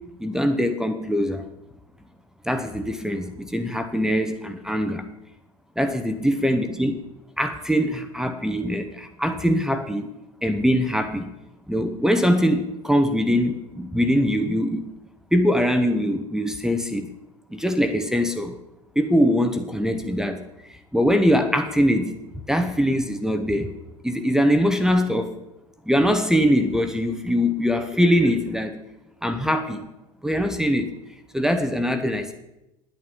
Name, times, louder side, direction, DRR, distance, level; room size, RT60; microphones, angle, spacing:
voice 1, 0.2-1.4 2.4-5.1 5.8-7.0 7.4-10.1 10.4-11.3 11.7-14.9 15.3-17.1 17.5-18.5 18.9-20.4 20.7-22.2 22.5-23.7 24.0-25.3 25.9-28.8 29.2-29.9 30.2-30.9 31.3-32.3, equal, 5° right, 8 dB, 1.2 m, -22 dB
10.5 x 9.7 x 7.2 m, 0.91 s
figure-of-eight pair, 65°, 19 cm